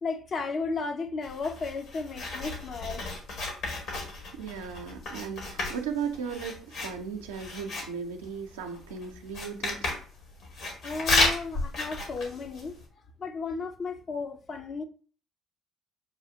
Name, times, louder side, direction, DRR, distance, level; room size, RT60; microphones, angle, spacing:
voice 1, 0.0-3.1 10.8-12.8 13.2-14.8, left 4 dB, 50° left, 0.6 m, -34 dB
Writing, 1.2-12.8, left 2 dB, 65° left, 1.7 m, -33 dB
voice 2, 4.4-9.9, right 6 dB, 90° right, 0.5 m, -36 dB
7.0 x 2.4 x 2.7 m
hypercardioid pair, 55°, 0 cm